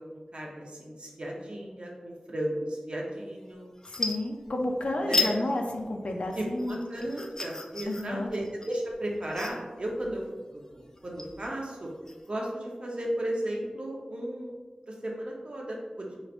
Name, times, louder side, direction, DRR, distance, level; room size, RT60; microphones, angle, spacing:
voice 1, 0.1-3.7 5.0-5.3 6.3-10.2 10.5-11.9 12.3-14.5 14.9-16.2, right 1 dB, 55° right, -2 dB, 0.8 m, -35 dB
sound 1, 3.2-3.5 3.8-4.8 5.1-5.4 5.7-12.3, left 3 dB, 25° left, 0.4 m, -34 dB
voice 2, 3.9-6.8 7.9-8.3, left 1 dB, 75° left, 2 dB, 0.5 m, -31 dB
4.8 x 3.1 x 2.5 m, 1.4 s
wide cardioid pair, 75°, 2 cm